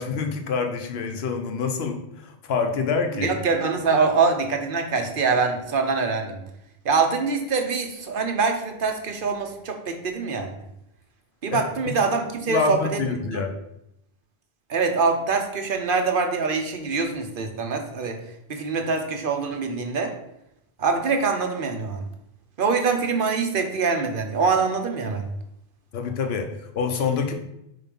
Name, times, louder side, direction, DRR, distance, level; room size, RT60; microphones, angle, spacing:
voice 1, 0.0-3.3 11.5-11.9 12.4-13.5 25.9-27.3, left 5 dB, 75° left, 6 dB, 1.0 m, -26 dB
voice 2, 3.1-6.4 6.8-10.5 11.4-13.0 13.3-13.4 14.7-18.2 18.5-20.1 20.8-22.0 22.6-25.3, right 4 dB, 60° right, 5 dB, 1.0 m, -24 dB
5.0 x 3.9 x 5.2 m, 0.82 s
omnidirectional pair, 1.0 m